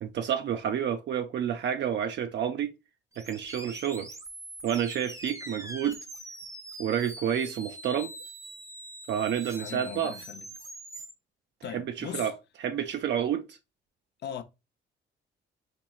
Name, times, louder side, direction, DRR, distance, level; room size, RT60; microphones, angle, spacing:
voice 1, 0.0-2.7 3.2-4.1 4.6-6.0 6.8-8.1 9.1-10.1 11.7-12.3 12.6-13.6, right 9 dB, 60° right, 0.4 m, -29 dB
sound 1, 3.1-11.1, right 1 dB, 15° right, 0.6 m, -43 dB
voice 2, 9.6-10.5 11.6-12.3 14.2-14.4, left 8 dB, 60° left, 0.5 m, -39 dB
4.5 x 2.9 x 2.3 m
cardioid pair, 90°, 20 cm